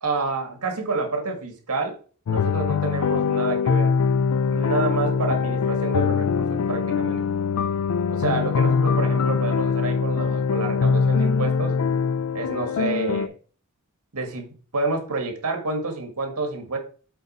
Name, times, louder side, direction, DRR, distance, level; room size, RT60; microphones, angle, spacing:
voice 1, 0.0-2.0 2.3-3.9 4.5-7.3 8.1-11.7 12.3-13.3 14.1-16.8, right 3 dB, 85° right, 4 dB, 1.6 m, -28 dB
sound 1, 2.3-13.3, left 5 dB, 65° left, 0.3 m, -22 dB
8.0 x 4.1 x 4.1 m, 0.40 s
head